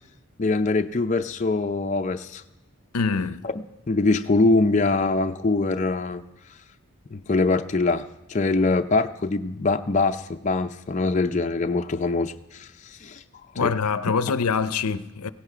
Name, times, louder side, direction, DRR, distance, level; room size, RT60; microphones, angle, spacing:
voice 1, 0.4-2.4 3.4-3.5 3.9-6.2 7.1-13.2 13.6-13.7, left 3 dB, 30° left, 0.5 m, -23 dB
voice 2, 2.9-3.4 13.6-15.3, left 5 dB, 90° left, 0.7 m, -24 dB
17.0 x 16.5 x 5.0 m
head